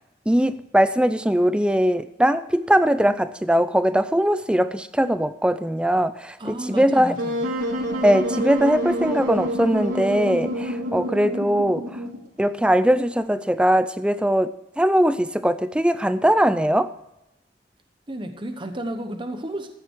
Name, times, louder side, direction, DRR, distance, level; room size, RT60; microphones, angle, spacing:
voice 1, 0.3-6.4 6.7-7.1 8.0-11.9 12.4-14.5 14.8-16.9, equal, 5° right, 0.4 m, -20 dB
voice 2, 6.4-7.5 18.1-19.7, right 1 dB, 25° right, 1.0 m, -32 dB
Wind instrument woodwind instrument, 7.2-12.3, equal, 80° right, 3.1 m, -27 dB
14.0 x 9.7 x 4.6 m
head